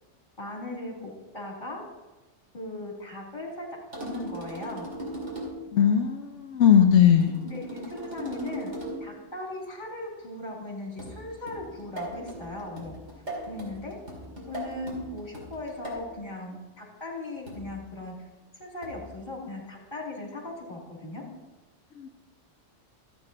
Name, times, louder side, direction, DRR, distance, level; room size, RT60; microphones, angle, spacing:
voice 1, 0.4-1.8 2.5-3.7 3.9-4.9 7.4-8.7 9.0-13.0 13.5-14.0 14.5-18.1 18.6-21.2, left 2 dB, 40° left, -1 dB, 2.4 m, -38 dB
sound 1, 3.9-5.7 7.1-9.1 11.0-16.1 17.5-17.8 18.8-19.1, right 1 dB, 75° right, 2.8 m, -39 dB
voice 2, 5.7-7.3 22.0-22.1, left 8 dB, 85° left, 4 dB, 1.0 m, -19 dB
12.5 x 8.2 x 3.9 m, 1.1 s
omnidirectional pair, 1.2 m